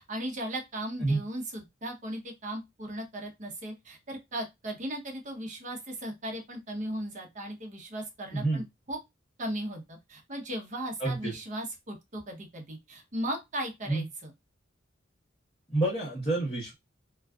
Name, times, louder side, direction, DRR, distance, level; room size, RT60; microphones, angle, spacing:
voice 1, 0.0-9.0 9.4-14.3, right 1 dB, 40° right, 3 dB, 0.7 m, -37 dB
voice 2, 8.3-8.6 11.0-11.3 13.9-14.0 15.7-16.7, right 2 dB, 25° left, -8 dB, 1.0 m, -28 dB
2.4 x 2.3 x 2.3 m, 0.20 s
head